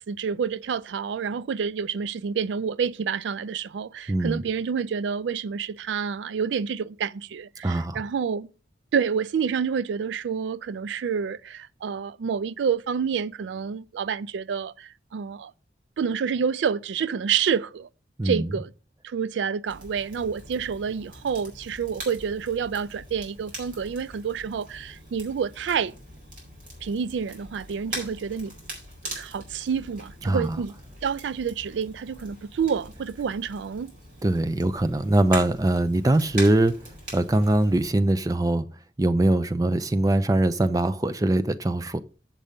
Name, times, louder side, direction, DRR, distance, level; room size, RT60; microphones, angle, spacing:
voice 1, 0.1-8.5 8.9-15.5 16.0-17.9 18.2-18.7 19.0-25.9 26.8-28.5 29.2-30.7 31.0-33.9, right 6 dB, 85° right, 0.4 m, -28 dB
voice 2, 4.1-4.4 7.6-8.0 18.2-18.5 30.2-30.6 34.2-36.8 37.1-38.7 39.0-42.0, right 1 dB, 20° right, 0.5 m, -22 dB
Crackle, 19.7-37.9, right 1 dB, 50° right, 4.2 m, -42 dB
7.5 x 6.9 x 5.1 m
head